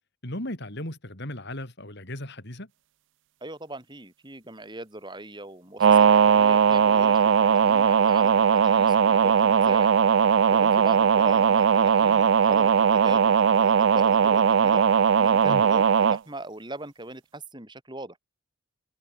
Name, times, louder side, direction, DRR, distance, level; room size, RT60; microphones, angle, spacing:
voice 1, 0.2-2.7 15.4-15.7, left 1 dB, 50° left, 5.0 m, -36 dB
voice 2, 3.4-9.9 10.5-14.9 15.1-18.2, right 2 dB, 20° right, 6.2 m, -40 dB
sound 1, 5.8-16.2, right 6 dB, 60° right, 0.4 m, -19 dB
head